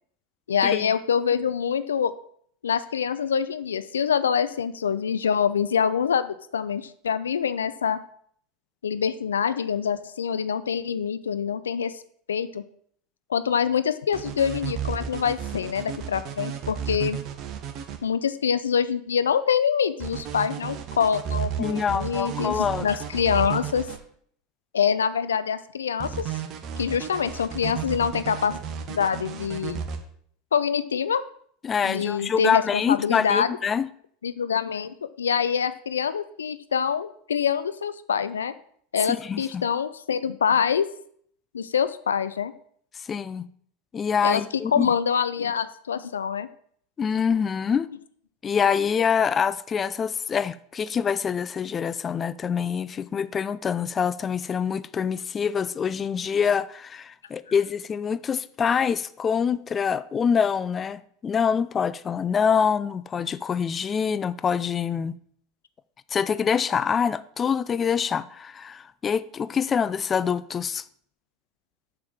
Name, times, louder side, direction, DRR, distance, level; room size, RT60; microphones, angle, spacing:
voice 1, 0.5-2.1 2.6-8.0 8.8-12.0 12.3-12.6 13.3-17.2 18.0-23.9 24.7-26.4 26.8-28.6 28.9-29.8 30.5-31.2 31.8-33.5 34.2-38.5 38.9-40.9 41.5-42.5 44.2-44.4 44.7-46.5, left 7 dB, 80° left, 0.5 m, -25 dB
sound 1, 14.1-18.0 20.0-24.0 26.0-30.0, right 9 dB, 45° right, 1.6 m, -33 dB
voice 2, 21.6-22.9 31.6-33.9 39.1-39.6 43.1-43.5 43.9-44.9 47.0-47.9 48.4-65.2 66.1-70.8, left 7 dB, 30° left, 0.5 m, -25 dB
7.3 x 6.8 x 7.2 m
figure-of-eight pair, 80°, 0 cm